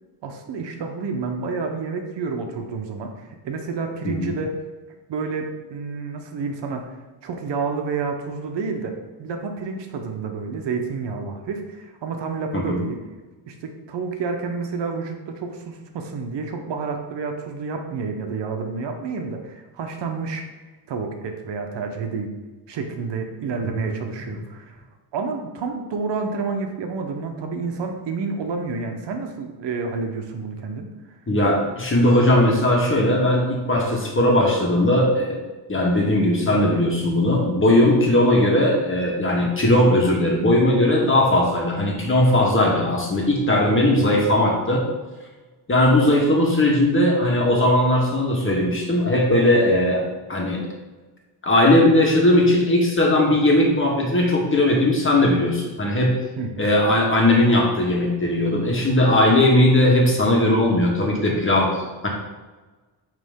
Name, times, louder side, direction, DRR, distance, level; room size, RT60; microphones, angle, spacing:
voice 1, 0.2-4.5 5.1-6.9 7.2-13.0 13.5-20.4 20.9-22.3 22.7-24.8 25.1-30.9 56.4-56.6, right 4 dB, 70° right, 4 dB, 1.0 m, -29 dB
voice 2, 31.3-35.4 35.7-44.8 45.7-50.0 50.3-50.6 51.4-56.1 56.6-62.1, left 1 dB, 30° left, -1 dB, 1.7 m, -18 dB
9.0 x 3.3 x 3.7 m, 1.2 s
cardioid pair, 95°, 44 cm